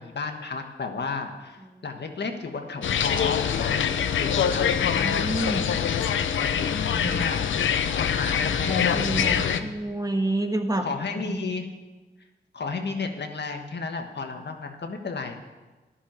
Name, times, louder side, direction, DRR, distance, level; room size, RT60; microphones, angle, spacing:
voice 1, 0.0-5.7 6.4-7.4 8.0-9.0 9.3-9.7 10.8-11.7 12.5-15.4, left 4 dB, 65° left, 4 dB, 1.5 m, -33 dB
sound 1, 2.8-9.6, left 8 dB, 85° left, 0.6 m, -24 dB
voice 2, 4.9-5.6 6.6-7.3 8.4-11.5, right 1 dB, 20° right, 5 dB, 1.6 m, -30 dB
11.5 x 7.1 x 8.9 m, 1.2 s
cardioid pair, 45°, 19 cm